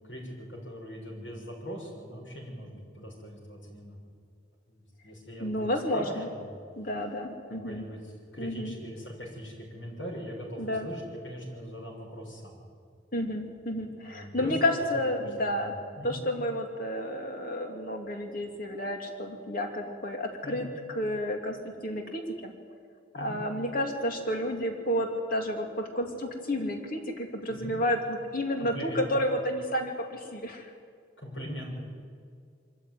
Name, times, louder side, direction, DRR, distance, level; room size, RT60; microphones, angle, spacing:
voice 1, 0.1-4.0 4.7-6.5 7.6-12.6 14.0-16.2 20.4-20.7 23.1-23.4 27.5-27.7 28.6-29.0 31.2-31.8, equal, 80° left, -1 dB, 6.8 m, -41 dB
voice 2, 5.4-6.3 6.8-7.8 8.4-8.7 10.6-10.9 13.1-15.7 16.0-20.7 20.9-22.5 23.1-30.7, left 1 dB, 50° left, 3 dB, 2.9 m, -31 dB
24.0 x 14.0 x 9.6 m, 2.1 s
head